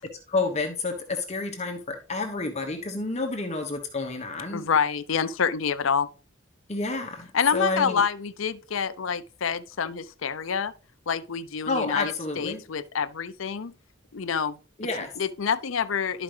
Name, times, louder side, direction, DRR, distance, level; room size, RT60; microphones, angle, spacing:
voice 1, 0.3-4.6 6.7-8.0 11.7-12.6 14.8-15.1, left 3 dB, 35° left, 1.0 m, -29 dB
voice 2, 4.5-6.1 7.3-10.7 11.1-13.7 14.1-14.6 15.2-16.2, left 6 dB, 75° left, 0.5 m, -27 dB
11.5 x 5.0 x 3.2 m
head